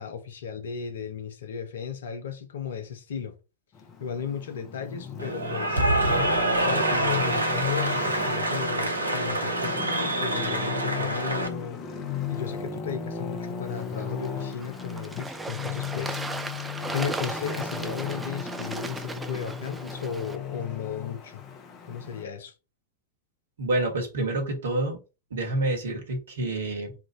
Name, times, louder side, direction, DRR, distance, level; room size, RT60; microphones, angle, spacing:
voice 1, 0.0-3.4 4.0-5.9 6.5-11.8 12.3-16.2 16.9-21.4 21.9-22.5, left 7 dB, 65° left, 0.8 m, -35 dB
Traffic noise roadway noise, 3.7-22.2, left 6 dB, 30° left, 0.8 m, -36 dB
Cheering / Applause, 5.2-11.5, right 1 dB, 80° right, 0.7 m, -26 dB
Bird / Water, 13.6-20.4, right 3 dB, 10° right, 0.5 m, -37 dB
voice 2, 23.6-25.0 25.3-26.9, right 2 dB, 65° right, 1.4 m, -28 dB
3.7 x 2.5 x 4.4 m
figure-of-eight pair, 90°, 0 cm